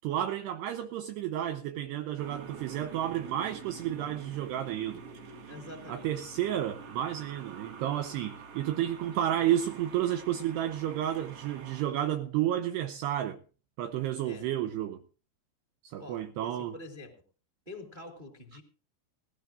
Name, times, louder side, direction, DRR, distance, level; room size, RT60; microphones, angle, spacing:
voice 1, 0.0-5.0 5.9-13.4 13.8-15.0 15.9-16.7, right 11 dB, 80° right, 2.4 m, -31 dB
sound 1, 2.2-11.8, right 5 dB, 50° right, 1.8 m, -47 dB
voice 2, 5.5-6.2 14.2-14.5 16.0-17.1 17.6-18.6, left 2 dB, 15° right, 2.3 m, -46 dB
18.5 x 18.5 x 2.6 m
omnidirectional pair, 5.8 m